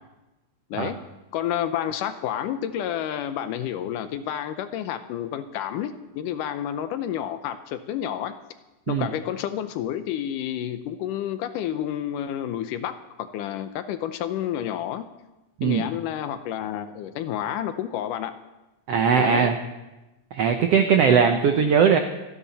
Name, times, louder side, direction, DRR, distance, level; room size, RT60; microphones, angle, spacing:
voice 1, 1.3-8.3 8.9-15.0 15.6-18.3 19.2-19.5, left 10 dB, 75° left, 11 dB, 2.1 m, -30 dB
voice 2, 18.9-19.6 20.3-22.0, right 6 dB, 90° right, 6 dB, 1.3 m, -19 dB
28.0 x 10.0 x 4.1 m, 1.0 s
omnidirectional pair, 4.1 m